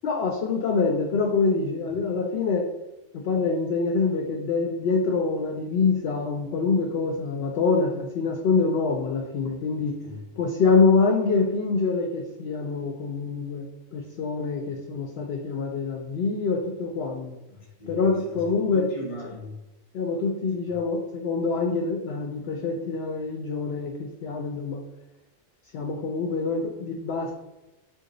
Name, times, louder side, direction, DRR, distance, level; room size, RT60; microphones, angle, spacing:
voice 1, 0.0-2.7 3.1-10.0 10.4-17.3 17.9-18.9 19.9-24.8 25.7-27.3, left 4 dB, 65° left, 2 dB, 0.7 m, -25 dB
voice 2, 17.5-19.6 20.7-20.8, left 1 dB, 30° left, -2 dB, 0.9 m, -40 dB
3.8 x 2.7 x 3.8 m, 0.98 s
omnidirectional pair, 1.4 m